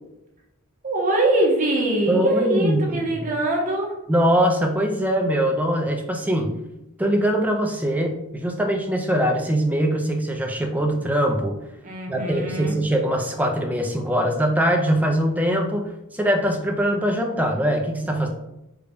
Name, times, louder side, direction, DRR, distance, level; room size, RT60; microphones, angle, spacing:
voice 1, 0.8-3.9 11.8-12.7, right 1 dB, 35° right, -1 dB, 0.8 m, -23 dB
voice 2, 2.1-3.3 4.1-6.5 7.0-11.6 12.1-18.3, equal, 5° right, 3 dB, 0.4 m, -22 dB
3.9 x 2.3 x 3.4 m, 0.89 s
head